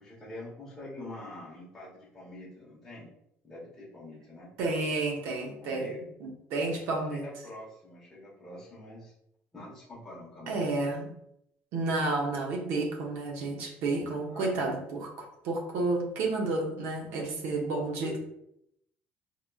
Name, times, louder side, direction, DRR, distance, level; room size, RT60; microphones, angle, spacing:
voice 1, 0.0-3.1 3.4-4.5 5.6-6.1 7.1-9.1 9.5-10.7 14.2-14.8 18.0-18.2, left 1 dB, 10° left, -7 dB, 1.0 m, -45 dB
voice 2, 4.6-7.3 10.5-11.1 11.7-18.2, right 2 dB, 60° right, 1 dB, 0.8 m, -31 dB
4.0 x 2.9 x 2.3 m, 0.77 s
cardioid pair, 175°, 4 cm